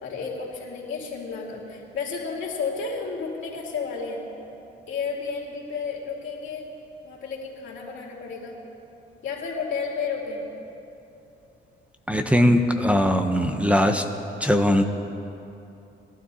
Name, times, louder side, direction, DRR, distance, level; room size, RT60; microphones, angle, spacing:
voice 1, 0.0-4.2 4.9-6.7 7.0-8.5 9.2-10.4, left 5 dB, 75° left, -3 dB, 2.7 m, -32 dB
voice 2, 12.1-14.0 14.4-14.8, equal, 5° right, 5 dB, 0.7 m, -20 dB
21.5 x 12.0 x 2.8 m, 2.8 s
cardioid pair, 90°, 20 cm